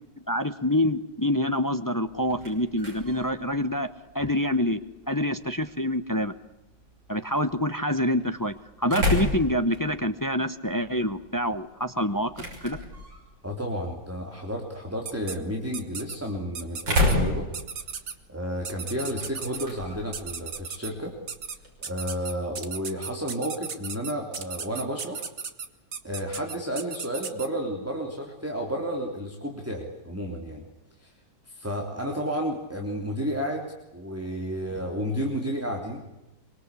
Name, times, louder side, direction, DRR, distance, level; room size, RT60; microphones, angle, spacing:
voice 1, 0.3-3.9 4.1-4.8 5.1-6.3 7.1-12.3 12.6-12.8, left 1 dB, 20° left, 10 dB, 0.5 m, -26 dB
sound 1, 2.0-21.9, left 1 dB, 85° right, 7.0 m, -34 dB
voice 2, 13.4-17.5 18.3-21.1 21.6-25.2 26.0-30.6 31.0-31.1 31.5-33.6 33.9-36.2, equal, 5° right, 1 dB, 3.3 m, -32 dB
sound 2, 15.0-15.4 15.7-16.2 16.5-17.1 17.5-18.1 18.6-19.7 20.1-20.9 21.3-21.6 21.8-27.5, right 6 dB, 50° right, 1.9 m, -35 dB
24.5 x 24.5 x 8.4 m, 0.99 s
omnidirectional pair, 2.0 m